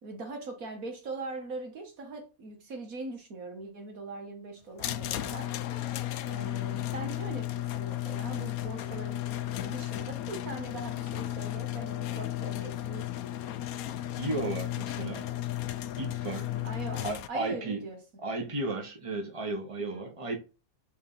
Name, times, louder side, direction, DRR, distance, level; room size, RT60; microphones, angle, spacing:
voice 1, 0.0-5.6 6.3-13.1 16.5-18.2 19.8-20.0, right 3 dB, 70° right, 1.9 m, -41 dB
sound 1, 4.8-17.3, left 14 dB, 80° left, 1.0 m, -34 dB
voice 2, 14.2-15.3 16.0-16.5 17.0-17.9 18.2-20.4, right 2 dB, 25° right, 1.5 m, -34 dB
4.9 x 4.2 x 5.6 m
omnidirectional pair, 1.5 m